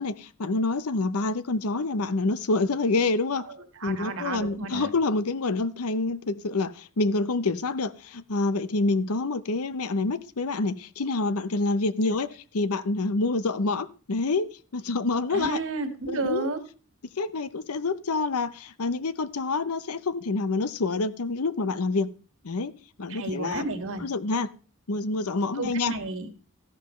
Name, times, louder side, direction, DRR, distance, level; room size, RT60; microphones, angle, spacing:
voice 1, 0.0-3.5 3.8-15.6 16.1-16.5 17.2-22.1 22.4-22.7 23.0-23.7 24.0-24.5 24.9-25.9, left 3 dB, 70° left, 0.7 m, -27 dB
voice 2, 3.8-4.9 15.3-16.6 23.1-24.0 25.5-26.3, right 3 dB, 65° right, 1.9 m, -32 dB
14.0 x 11.0 x 3.2 m
head